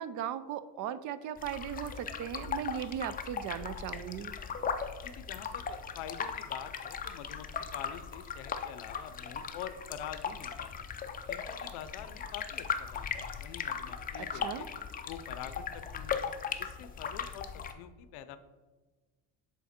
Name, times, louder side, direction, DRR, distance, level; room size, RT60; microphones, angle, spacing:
voice 1, 0.0-4.3 14.2-14.7, right 10 dB, 50° right, 14 dB, 0.5 m, -38 dB
sound 1, 1.4-17.7, left 7 dB, 20° left, 0.4 m, -38 dB
voice 2, 5.0-10.8 11.3-14.7 15.1-16.2 16.6-18.4, left 9 dB, 75° left, 12 dB, 0.6 m, -46 dB
7.3 x 3.6 x 4.3 m, 1.3 s
cardioid pair, 110°, 41 cm